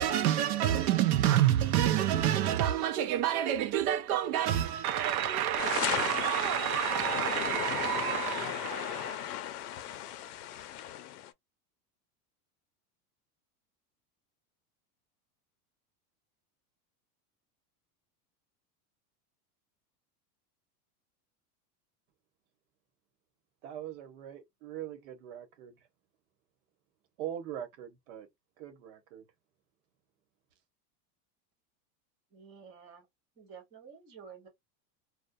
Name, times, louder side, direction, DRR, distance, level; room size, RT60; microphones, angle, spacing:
voice 1, 0.0-9.3, right 11 dB, 70° right, 0.6 m, -28 dB
sound 1, 5.6-11.3, left 12 dB, 80° left, 0.6 m, -36 dB
voice 2, 23.6-25.8 27.2-28.3 28.6-29.2, right 10 dB, 50° right, 1.0 m, -42 dB
voice 3, 32.3-33.0 33.4-34.5, right 6 dB, 10° right, 0.4 m, -51 dB
2.3 x 2.2 x 2.5 m
supercardioid pair, 180°, 46 cm